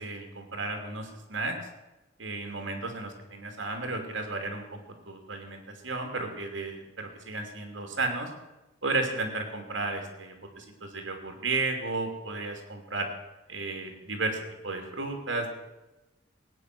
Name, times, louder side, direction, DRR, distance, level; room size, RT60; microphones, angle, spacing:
voice 1, 0.0-1.7 2.2-4.8 5.0-8.3 8.8-13.1 13.5-14.4 14.6-15.5, right 3 dB, 80° right, 3 dB, 2.8 m, -33 dB
18.5 x 9.6 x 6.1 m, 1.0 s
head